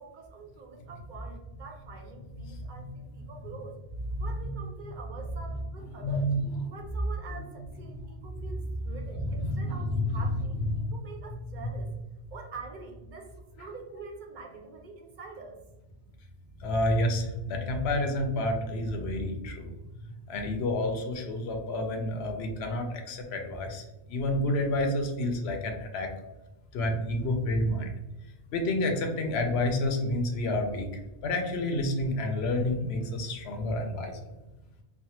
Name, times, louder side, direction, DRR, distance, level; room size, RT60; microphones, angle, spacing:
voice 1, 0.0-3.8 4.2-6.3 6.7-11.9 12.3-15.6, right 4 dB, 55° right, 1 dB, 0.7 m, -45 dB
voice 2, 4.1-4.6 5.9-6.5 8.9-10.1 10.7-10.9 16.6-19.7 20.3-23.8 24.1-26.1 26.7-27.9 28.5-30.9 31.2-34.2, left 1 dB, 85° left, 4 dB, 0.8 m, -29 dB
3.3 x 2.0 x 2.8 m, 0.98 s
omnidirectional pair, 1.1 m